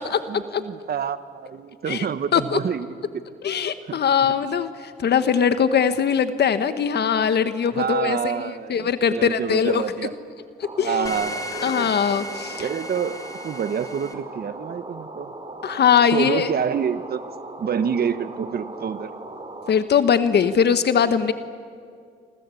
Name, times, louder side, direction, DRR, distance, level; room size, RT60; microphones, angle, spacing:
voice 1, 0.3-2.9 3.9-4.0 7.7-10.1 10.8-11.9 12.6-15.3 16.1-17.2 17.6-19.1, right 7 dB, 50° right, 12 dB, 1.3 m, -27 dB
voice 2, 3.4-8.2 8.7-9.8 10.8-11.1 11.6-12.7 15.6-16.5 19.7-21.3, left 7 dB, 55° left, 11 dB, 1.3 m, -21 dB
sound 1, 10.6-19.7, right 2 dB, 25° right, 4.3 m, -39 dB
sound 2, 11.1-14.1, left 1 dB, 15° left, 3.2 m, -35 dB
27.5 x 25.5 x 8.5 m, 2.2 s
cardioid pair, 90°, 20 cm